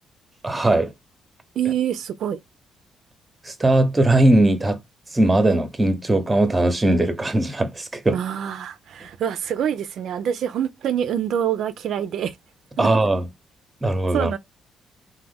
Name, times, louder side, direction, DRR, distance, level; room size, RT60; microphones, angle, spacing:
voice 1, 0.4-0.9 3.4-4.8 5.1-8.2 12.8-13.3 13.8-14.3, right 2 dB, 15° right, 0.7 m, -19 dB
voice 2, 1.6-2.4 8.1-12.3 12.8-12.9 14.1-14.4, right 9 dB, 75° right, 0.3 m, -25 dB
3.0 x 2.1 x 3.5 m
cardioid pair, 90°, 0 cm